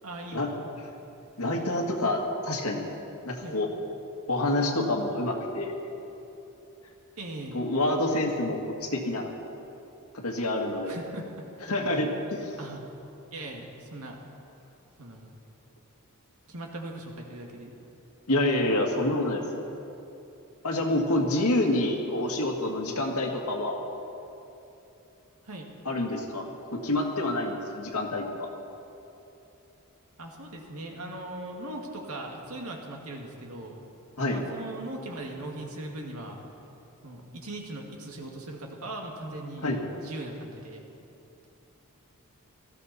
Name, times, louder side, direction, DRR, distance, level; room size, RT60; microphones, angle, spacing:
voice 1, 0.0-0.6 3.4-3.6 7.2-7.6 10.9-11.4 12.6-12.8 13.3-14.2 15.0-15.4 16.5-17.7 25.4-25.7 30.2-33.8 34.2-36.4 37.0-39.7 40.0-40.8, right 1 dB, 80° right, 1 dB, 2.1 m, -39 dB
voice 2, 1.4-2.9 3.2-3.7 4.3-5.7 7.5-9.3 10.1-11.0 11.7-12.6 18.3-19.4 20.6-23.8 25.9-28.5 34.2-34.4 39.6-39.8, left 1 dB, 85° left, 1 dB, 1.9 m, -27 dB
18.5 x 14.5 x 4.2 m, 3.0 s
head